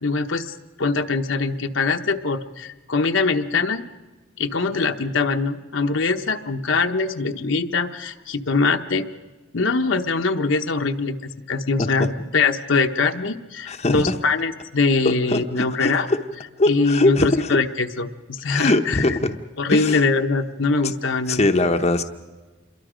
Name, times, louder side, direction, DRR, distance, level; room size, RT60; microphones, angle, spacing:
voice 1, 0.0-3.9 4.4-9.1 9.5-16.1 16.7-19.0 19.6-21.4, left 4 dB, 65° left, 6 dB, 1.0 m, -22 dB
voice 2, 13.7-14.2 15.3-16.2 16.6-17.6 18.5-19.4 19.7-20.0 20.8-20.9 21.3-22.0, left 2 dB, 30° left, 5 dB, 0.8 m, -21 dB
28.0 x 22.5 x 5.1 m, 1.2 s
head